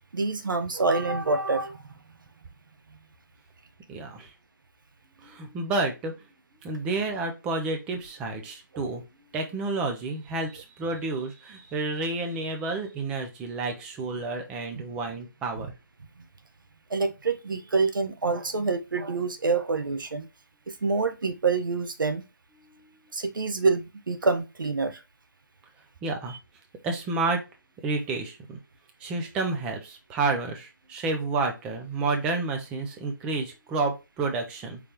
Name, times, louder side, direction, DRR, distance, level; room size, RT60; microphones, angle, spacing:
voice 1, 0.1-1.8 14.7-14.8 16.9-20.3 20.7-22.2 23.1-25.0, right 4 dB, 70° right, 0.9 m, -26 dB
voice 2, 3.9-4.3 5.2-6.1 6.6-9.0 9.3-15.7 22.8-22.9 26.0-26.4 26.8-27.4 27.8-28.6 29.0-34.8, right 3 dB, 10° right, 0.5 m, -30 dB
5.0 x 3.3 x 2.9 m
figure-of-eight pair, 160°, 11 cm